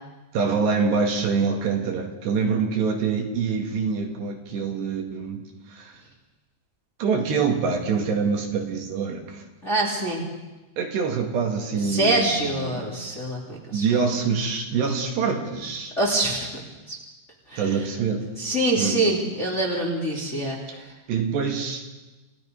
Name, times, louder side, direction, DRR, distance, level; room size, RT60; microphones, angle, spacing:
voice 1, 0.3-6.0 7.0-9.5 10.8-12.9 13.7-15.9 17.6-18.3 18.7-19.0 20.7-20.8 21.1-21.9, right 5 dB, 70° right, 2 dB, 4.1 m, -25 dB
voice 2, 9.6-10.2 11.8-13.9 16.0-17.0 17.5-17.8 18.4-20.9, right 2 dB, 20° left, -4 dB, 2.7 m, -25 dB
29.0 x 17.0 x 5.4 m, 1.1 s
omnidirectional pair, 5.3 m